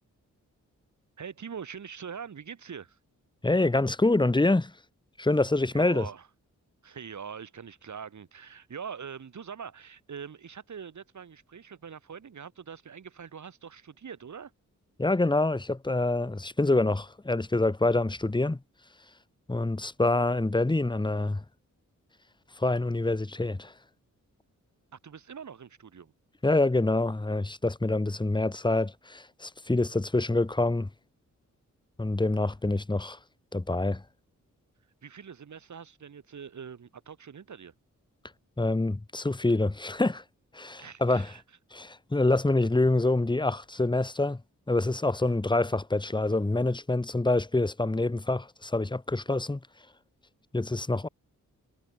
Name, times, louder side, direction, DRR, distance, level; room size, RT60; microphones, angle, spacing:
voice 1, 1.2-3.0 5.7-6.3 6.8-14.5 24.9-26.1 35.0-37.7 40.8-41.4, right 7 dB, 65° right, 4.5 m, -43 dB
voice 2, 3.4-4.7 5.2-6.0 15.0-18.6 19.5-21.4 22.6-23.7 26.4-30.9 32.0-33.2 33.5-34.0 38.6-40.2 40.5-41.3 41.7-44.4 44.7-49.6 50.5-51.1, left 2 dB, 15° left, 1.6 m, -26 dB
cardioid pair, 80°, 31 cm